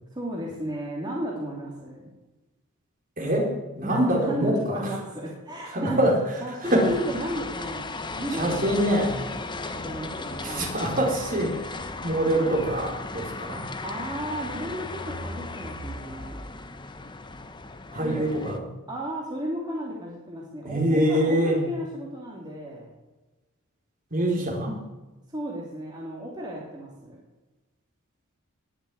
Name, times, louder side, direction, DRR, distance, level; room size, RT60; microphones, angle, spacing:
voice 1, 0.1-2.1 3.8-6.0 6.4-9.2 9.5-10.7 13.8-16.4 18.0-18.3 18.9-22.9 25.3-27.2, right 1 dB, 20° right, -3 dB, 3.0 m, -34 dB
voice 2, 3.2-4.9 5.7-6.9 8.3-9.2 10.4-13.6 17.9-18.7 20.6-21.7 24.1-24.8, right 1 dB, 40° right, 0 dB, 4.3 m, -25 dB
sound 1, 6.6-18.6, left 3 dB, 20° left, 1.0 m, -36 dB
20.5 x 6.9 x 9.3 m, 1.1 s
head